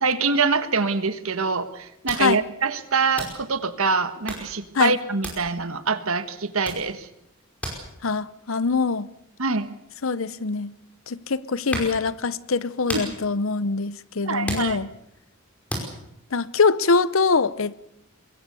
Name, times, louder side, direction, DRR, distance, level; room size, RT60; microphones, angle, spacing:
voice 1, 0.0-7.1 9.4-9.7 12.9-13.2 14.2-14.8, right 4 dB, 70° right, 1.5 m, -25 dB
sound 1, 2.1-2.8 3.1-3.7 4.1-4.6 5.2-5.8 6.2-6.4 6.6-10.8 11.3-12.1 12.5-15.2 15.7-16.0, equal, 5° left, 5.1 m, -35 dB
voice 2, 8.0-9.1 10.0-10.7 11.1-14.9 16.3-17.7, left 4 dB, 65° left, 0.7 m, -23 dB
23.0 x 21.0 x 6.9 m
head